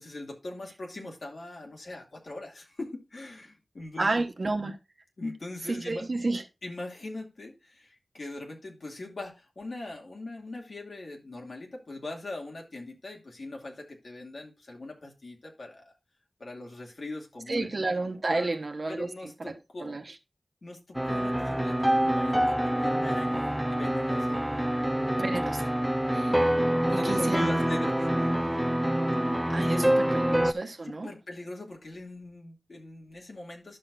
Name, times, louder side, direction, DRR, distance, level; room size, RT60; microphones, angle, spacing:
voice 1, 0.0-4.1 5.2-6.0 6.6-15.9 16.4-17.7 18.3-18.5 18.9-20.0 20.6-24.4 26.9-28.6 29.6-29.9 30.8-33.8, left 2 dB, 70° left, 2.5 m, -41 dB
voice 2, 4.0-4.8 5.7-6.4 17.5-19.1 19.4-19.5 19.8-20.1 25.2-25.7 26.1-26.4 26.9-27.5 29.5-31.1, right 2 dB, 55° right, 1.1 m, -31 dB
sound 1, 20.9-30.5, right 1 dB, 5° right, 0.5 m, -26 dB
11.5 x 6.5 x 2.6 m
wide cardioid pair, 80°, 0 cm